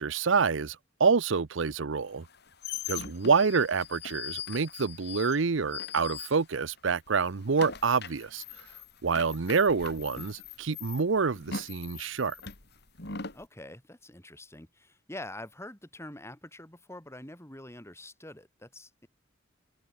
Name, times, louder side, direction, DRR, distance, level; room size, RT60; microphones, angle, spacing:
voice 1, 0.0-2.3 2.9-8.4 9.0-12.3, right 5 dB, 80° right, 0.7 m, -27 dB
sound 1, 2.2-6.8 7.1-13.4, left 6 dB, 60° left, 5.2 m, -41 dB
voice 2, 13.3-19.1, left 1 dB, 15° left, 5.6 m, -45 dB
head